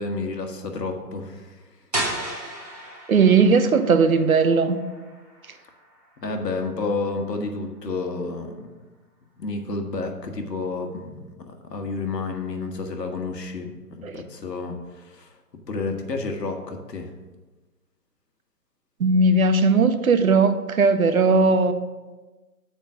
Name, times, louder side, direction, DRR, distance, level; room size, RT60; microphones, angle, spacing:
voice 1, 0.0-1.6 6.2-8.7 9.4-15.3 15.7-17.1, left 3 dB, 85° left, 4 dB, 1.5 m, -30 dB
sound 1, 1.9-7.6, right 1 dB, 25° right, 0.9 m, -35 dB
voice 2, 3.1-4.8 14.0-14.2 19.0-21.7, right 4 dB, 60° right, 10 dB, 0.8 m, -18 dB
7.3 x 5.1 x 6.0 m, 1.2 s
hypercardioid pair, 175°, 48 cm